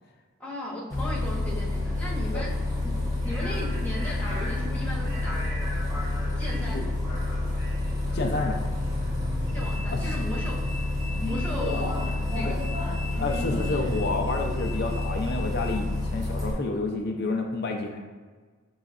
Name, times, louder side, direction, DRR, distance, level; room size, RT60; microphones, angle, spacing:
voice 1, 0.4-2.5 2.8-2.9 3.2-5.4 6.3-6.8 9.5-10.6 11.2-12.0 12.3-12.7, left 1 dB, 5° left, -6 dB, 1.0 m, -37 dB
Bus, 0.9-16.5, left 2 dB, 15° right, 0.8 m, -28 dB
voice 2, 8.1-8.7 9.9-10.0 11.6-11.9 12.4-12.5 13.2-18.0, left 3 dB, 50° left, 2 dB, 0.5 m, -29 dB
6.7 x 3.1 x 2.4 m, 1.4 s
head